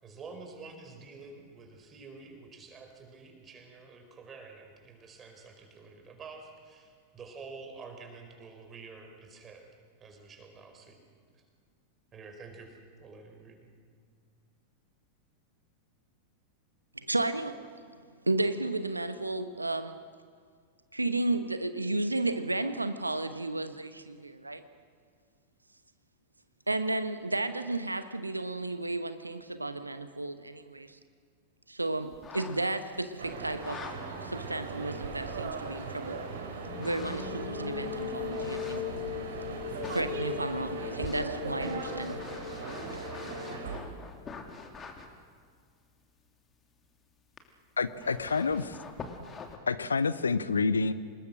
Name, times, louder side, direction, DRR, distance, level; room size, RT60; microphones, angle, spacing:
voice 1, 0.0-9.6 10.0-11.0 12.1-13.7, right 4 dB, 25° right, 3 dB, 4.8 m, -48 dB
voice 2, 17.1-17.6 18.3-20.0 20.9-24.6 26.7-31.0 31.7-33.8 34.2-36.2 36.8-38.8 39.9-42.2, right 2 dB, 85° right, 11 dB, 0.9 m, -33 dB
sound 1, 32.1-33.0 33.5-34.0 34.7-34.8 36.7-37.5 38.2-39.0 39.6-40.1 41.0-45.1 47.4-47.5 47.8-49.6, left 5 dB, 25° left, 2.6 m, -45 dB
sound 2, 33.2-43.8, right 4 dB, 65° right, 3.8 m, -39 dB
sound 3, 36.7-44.1, left 13 dB, 40° left, 1.2 m, -40 dB
voice 3, 47.8-48.8 49.7-50.9, left 4 dB, 75° left, 16 dB, 0.8 m, -28 dB
26.5 x 20.5 x 6.4 m, 2.1 s
figure-of-eight pair, 90°, 0 cm